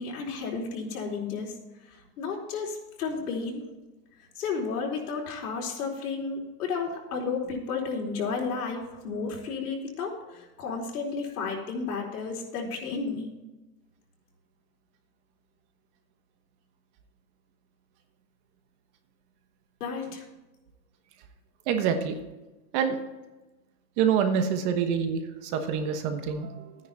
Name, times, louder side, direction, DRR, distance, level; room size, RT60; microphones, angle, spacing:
voice 1, 0.0-1.5 2.2-3.6 4.4-13.4 19.8-20.2, left 4 dB, 80° left, -2 dB, 4.2 m, -32 dB
voice 2, 21.7-22.2 22.7-23.0 24.0-26.8, right 7 dB, 35° right, 7 dB, 1.2 m, -26 dB
13.0 x 9.9 x 4.2 m, 1.1 s
supercardioid pair, 165°, 45 cm